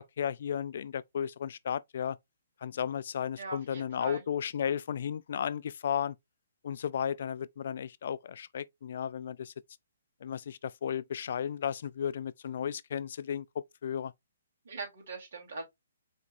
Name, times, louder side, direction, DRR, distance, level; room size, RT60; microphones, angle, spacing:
voice 1, 0.2-2.2 2.6-6.2 6.6-9.5 10.2-13.5 13.8-14.1, left 8 dB, 60° left, 0.3 m, -34 dB
voice 2, 3.4-4.2 14.6-15.6, right 3 dB, 65° right, 2.9 m, -41 dB
5.1 x 3.7 x 2.6 m
hypercardioid pair, 140°, 0 cm